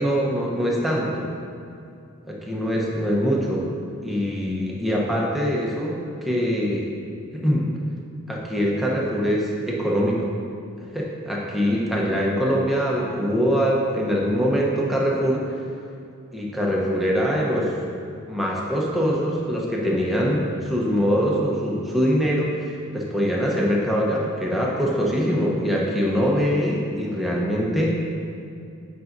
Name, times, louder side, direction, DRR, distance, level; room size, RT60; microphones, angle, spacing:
voice 1, 0.0-1.3 2.3-3.7 4.0-6.9 7.3-7.7 8.3-10.3 10.9-15.6 16.3-17.7 18.3-27.9, equal, ahead, -4 dB, 0.8 m, -23 dB
8.6 x 5.3 x 2.6 m, 2.5 s
head